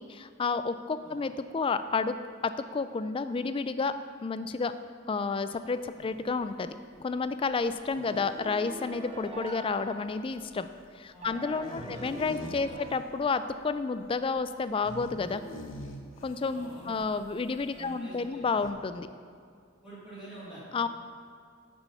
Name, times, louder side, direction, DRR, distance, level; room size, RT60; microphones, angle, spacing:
voice 1, 0.0-2.2 2.4-3.9 4.2-4.7 5.1-10.7 11.0-15.4 16.2-19.1 20.7-20.9, left 4 dB, 25° left, 11 dB, 0.3 m, -31 dB
sound 1, 5.6-18.0 18.3-18.7, left 1 dB, 75° left, 1.0 m, -47 dB
sound 2, 8.0-10.6 11.2-13.7, right 1 dB, 30° right, 0.8 m, -44 dB
voice 2, 11.1-11.4 11.8-12.9 16.5-17.0 17.7-18.5 19.8-20.9, right 2 dB, 5° right, -12 dB, 2.3 m, -48 dB
8.8 x 6.2 x 5.5 m, 2.3 s
head